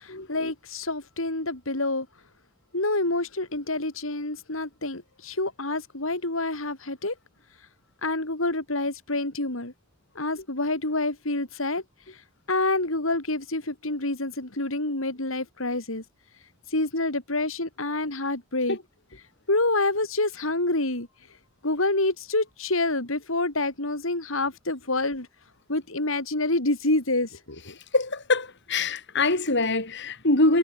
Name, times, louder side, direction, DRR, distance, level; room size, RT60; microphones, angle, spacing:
voice 1, 0.0-2.1 2.7-7.1 8.0-9.7 10.1-11.8 12.5-16.0 16.7-18.8 19.5-21.1 21.6-25.3 25.7-27.8, left 2 dB, 75° left, 4.8 m, -27 dB
voice 2, 27.9-30.6, left 2 dB, 60° left, 6.1 m, -24 dB
head